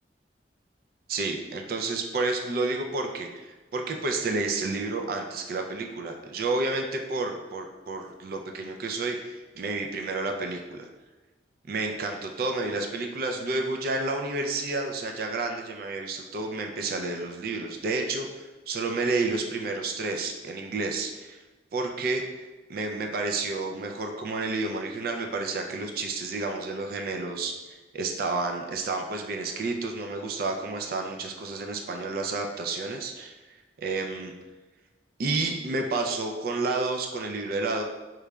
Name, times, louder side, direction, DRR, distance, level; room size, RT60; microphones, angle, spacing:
voice 1, 1.1-10.8 11.7-21.4 21.7-22.2 22.7-27.6 27.9-33.3 33.8-34.3 35.2-37.8, right 3 dB, 55° right, 3 dB, 0.4 m, -30 dB
4.8 x 3.1 x 2.3 m, 1.2 s
head